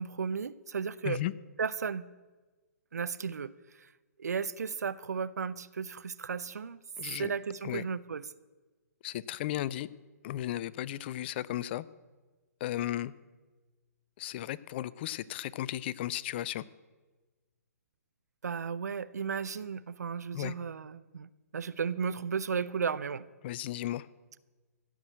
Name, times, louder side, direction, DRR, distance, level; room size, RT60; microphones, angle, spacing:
voice 1, 0.0-1.2 1.6-2.1 2.9-3.5 4.2-6.8 7.2-8.3 18.4-23.3, right 6 dB, 75° right, 18 dB, 0.6 m, -34 dB
voice 2, 7.0-7.3 7.6-7.8 9.0-9.9 10.2-11.8 12.6-13.1 14.2-16.6 20.3-20.5 23.4-24.1, left 13 dB, 40° left, 19 dB, 0.4 m, -35 dB
15.5 x 6.2 x 8.9 m, 1.3 s
hypercardioid pair, 130°, 9 cm